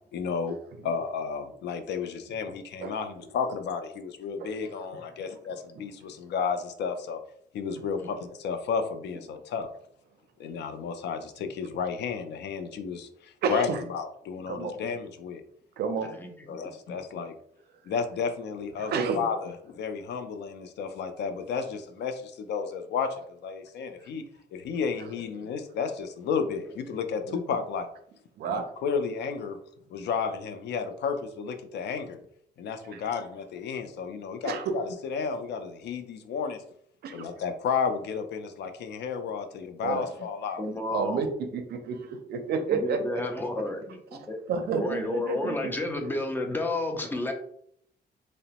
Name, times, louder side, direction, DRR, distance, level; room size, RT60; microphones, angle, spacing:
voice 1, 0.1-0.5 0.8-7.2 7.5-9.7 10.4-15.4 16.5-17.3 17.9-24.2 24.5-27.9 28.4-29.6 29.9-32.2 32.6-36.6 37.1-40.6, left 6 dB, 80° left, 8 dB, 0.4 m, -32 dB
voice 2, 13.4-13.8 14.5-14.7 15.8-16.1 18.8-19.2 27.3-27.4 28.4-28.7 32.9-33.0 34.4-34.8 37.0-37.3 39.8-40.1 40.9-41.3 41.5-43.0 44.5-45.7, right 5 dB, 65° right, 7 dB, 0.4 m, -30 dB
voice 3, 40.6-41.2 42.7-44.4 44.7-47.3, left 2 dB, 10° left, 3 dB, 0.4 m, -31 dB
2.8 x 2.0 x 2.8 m, 0.68 s
cardioid pair, 145°, 18 cm